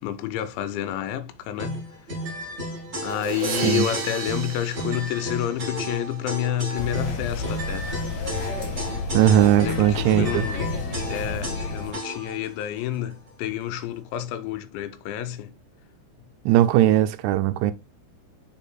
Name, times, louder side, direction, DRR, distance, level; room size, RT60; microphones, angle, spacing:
voice 1, 0.0-1.8 3.0-7.9 9.6-10.8 11.1-15.5, left 11 dB, 90° left, 2.9 m, -29 dB
sound 1, 1.6-12.5, equal, 30° right, 1.8 m, -33 dB
Crash cymbal, 3.0-6.0, right 6 dB, 60° right, 2.7 m, -33 dB
voice 2, 3.5-3.9 9.1-10.4 16.5-17.7, right 12 dB, 90° right, 3.0 m, -19 dB
sound 2, 6.7-11.9, left 4 dB, 55° left, 2.0 m, -31 dB
6.7 x 4.1 x 3.7 m
omnidirectional pair, 5.2 m